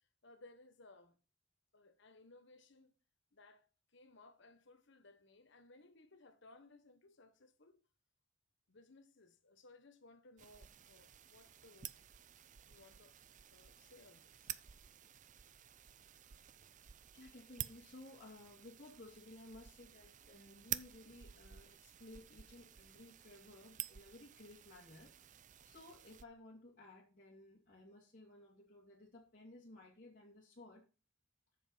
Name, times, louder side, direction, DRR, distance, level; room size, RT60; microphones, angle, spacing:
voice 1, 0.2-1.2 1.7-2.9 3.3-7.8 8.7-12.0 12.7-13.2 13.5-14.5, left 2 dB, 65° left, 1.4 m, -62 dB
sound 1, 10.4-26.2, right 11 dB, 40° right, 0.5 m, -51 dB
voice 2, 17.1-25.1 25.6-30.8, left 2 dB, 45° left, 2.5 m, -57 dB
8.0 x 7.3 x 5.7 m
head